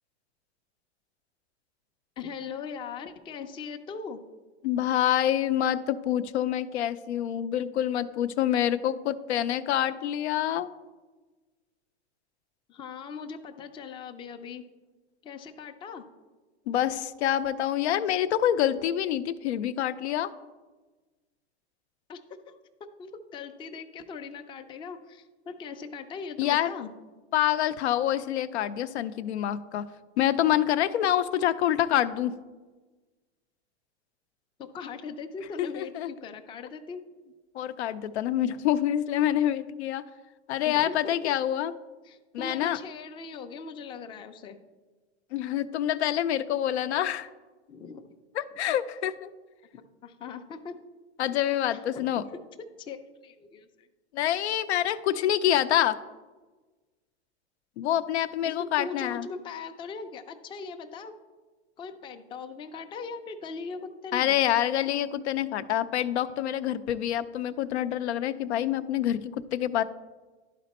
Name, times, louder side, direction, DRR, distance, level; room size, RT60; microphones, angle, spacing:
voice 1, 2.2-4.2 12.7-14.6 15.2-16.0 22.1-22.2 22.5-22.6 23.0-26.9 34.6-37.0 40.6-41.3 42.0-44.6 47.7-48.1 50.0-50.8 51.7-52.2 52.8-53.0 53.2-53.9 58.4-61.1 61.8-64.4, left 5 dB, 15° left, 6 dB, 0.4 m, -40 dB
voice 2, 4.6-10.7 16.7-20.3 26.4-26.7 27.3-29.8 30.2-32.3 35.6-36.1 37.5-40.0 40.5-41.7 42.3-42.8 45.3-47.3 48.3-49.3 51.2-52.2 54.1-56.0 57.8-59.3 64.1-69.2 69.5-69.8, left 11 dB, 85° left, 12 dB, 0.5 m, -26 dB
11.5 x 4.2 x 4.1 m, 1.2 s
supercardioid pair, 130°, 33 cm